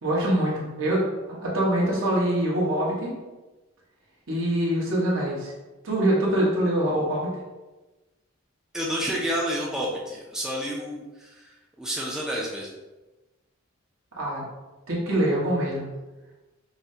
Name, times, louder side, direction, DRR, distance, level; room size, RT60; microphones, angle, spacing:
voice 1, 0.0-3.1 4.3-5.5 5.8-7.3 14.1-14.4 14.9-15.8, right 1 dB, 70° right, -5 dB, 1.3 m, -24 dB
voice 2, 8.7-12.8, equal, 5° right, -4 dB, 0.4 m, -30 dB
5.5 x 2.1 x 2.7 m, 1.1 s
head